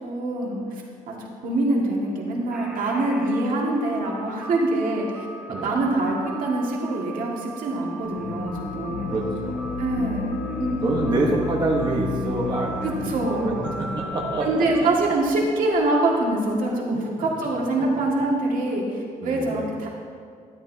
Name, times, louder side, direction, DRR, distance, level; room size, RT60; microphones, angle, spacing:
voice 1, 0.0-9.1 9.8-11.2 12.8-14.0 14.4-19.9, right 2 dB, 80° right, -2 dB, 2.0 m, -25 dB
sound 1, 2.5-14.8, right 2 dB, 5° right, 0.9 m, -40 dB
sound 2, 8.1-15.2, left 4 dB, 85° left, 1.0 m, -32 dB
voice 2, 9.1-9.7 10.8-13.5 13.8-14.9 16.9-17.0 17.8-17.9 19.2-19.7, right 2 dB, 30° right, -2 dB, 1.1 m, -27 dB
12.5 x 11.5 x 2.8 m, 2.2 s
wide cardioid pair, 175°, 14 cm